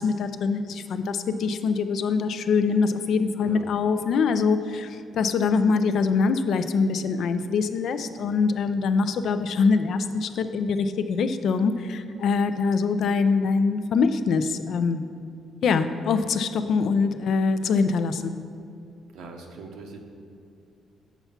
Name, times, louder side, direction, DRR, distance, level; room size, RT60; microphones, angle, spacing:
voice 1, 0.0-15.0 15.6-18.3, left 5 dB, 70° left, 10 dB, 0.4 m, -24 dB
voice 2, 19.1-20.0, right 3 dB, 85° right, 3 dB, 0.8 m, -42 dB
6.9 x 4.5 x 5.7 m, 2.5 s
cardioid pair, 90°, 0 cm